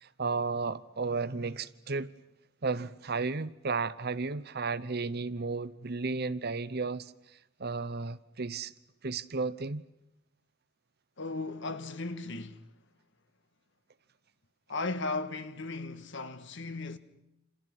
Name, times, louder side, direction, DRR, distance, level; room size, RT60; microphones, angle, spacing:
voice 1, 0.0-2.1 2.6-7.1 7.6-8.7 9.0-9.8, right 4 dB, 55° right, 0.9 m, -33 dB
voice 2, 11.2-12.7 14.7-17.0, left 3 dB, 65° left, 1.6 m, -36 dB
28.5 x 28.0 x 6.2 m
head